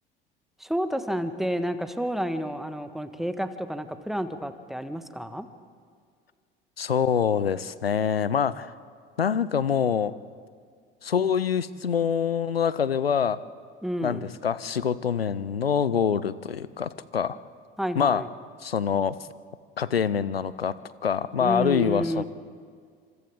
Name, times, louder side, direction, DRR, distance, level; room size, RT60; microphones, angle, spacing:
voice 1, 0.6-5.5 13.8-14.3 17.8-18.3 21.4-22.2, equal, ahead, 10 dB, 1.3 m, -30 dB
voice 2, 6.8-8.7 9.2-10.1 11.0-13.4 14.0-17.4 18.0-18.2 18.6-19.2 19.8-20.7 21.0-22.2, left 7 dB, 90° left, 18 dB, 0.6 m, -25 dB
28.0 x 26.5 x 3.7 m, 2.1 s
figure-of-eight pair, 65°, 29 cm